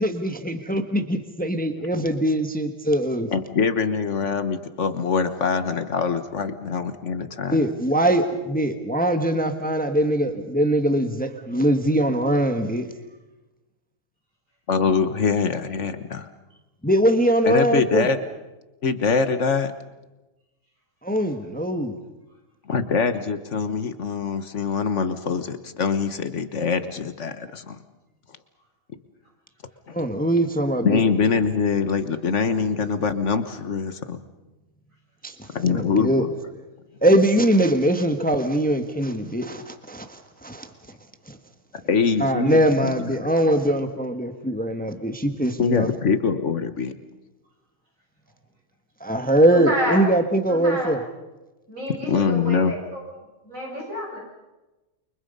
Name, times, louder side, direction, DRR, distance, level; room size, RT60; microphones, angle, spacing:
voice 1, 0.0-3.3 7.5-12.9 16.8-18.1 21.0-21.9 29.9-31.0 35.2-35.3 35.7-36.3 37.0-40.7 41.3-41.4 42.2-45.9 49.0-51.0, right 1 dB, 5° left, 6 dB, 1.4 m, -22 dB
voice 2, 3.3-7.7 14.7-16.3 17.5-18.2 18.8-19.7 22.7-27.8 29.9-30.0 30.8-34.2 35.5-36.3 41.9-43.1 45.6-46.9 52.1-52.7, left 5 dB, 60° left, 10 dB, 1.6 m, -23 dB
voice 3, 49.5-50.1 50.5-50.9 51.7-53.0 53.4-54.2, equal, 75° right, -2 dB, 8.3 m, -29 dB
29.0 x 24.0 x 5.5 m, 1.1 s
omnidirectional pair, 1.4 m